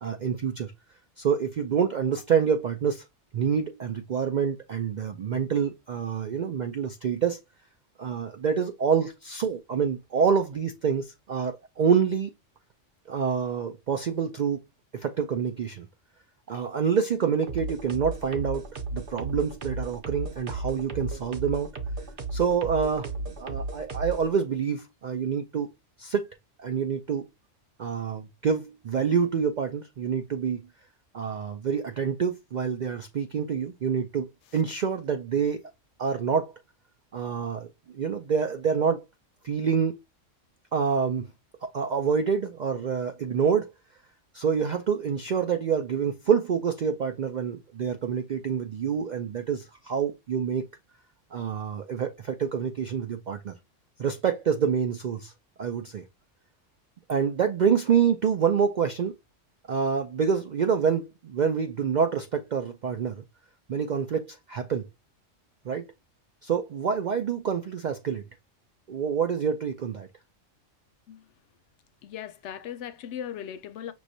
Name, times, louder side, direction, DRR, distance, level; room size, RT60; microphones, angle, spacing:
voice 1, 0.0-0.7 1.2-3.0 3.3-7.4 8.0-12.3 13.1-14.6 14.9-15.9 16.5-18.6 18.9-21.7 22.3-25.7 26.0-26.3 26.6-27.3 27.8-30.6 31.1-34.3 34.5-35.7 36.0-36.5 37.1-37.7 37.9-39.0 39.4-40.0 40.7-41.3 41.6-43.7 44.3-50.6 51.3-53.5 54.0-55.3 55.6-56.0 57.1-59.1 59.7-63.2 63.7-64.9 65.6-65.9 66.4-68.2 68.9-70.1, right 6 dB, 65° right, 0.4 m, -27 dB
sound 1, 17.5-24.3, right 2 dB, 50° right, 0.8 m, -34 dB
voice 2, 72.0-73.9, left 9 dB, 70° left, 0.8 m, -38 dB
6.1 x 3.1 x 2.6 m
omnidirectional pair, 1.3 m